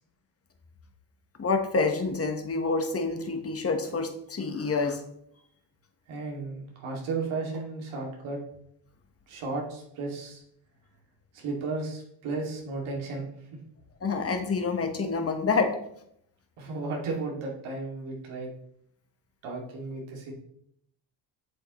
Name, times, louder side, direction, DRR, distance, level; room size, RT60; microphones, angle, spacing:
voice 1, 1.4-5.0 14.0-15.8, left 4 dB, 30° left, 5 dB, 1.3 m, -27 dB
voice 2, 6.1-8.4 9.3-10.4 11.3-13.3 16.6-18.5 19.4-20.3, right 3 dB, 90° right, -1 dB, 2.5 m, -34 dB
7.6 x 7.4 x 3.1 m, 0.71 s
cardioid pair, 100°, 47 cm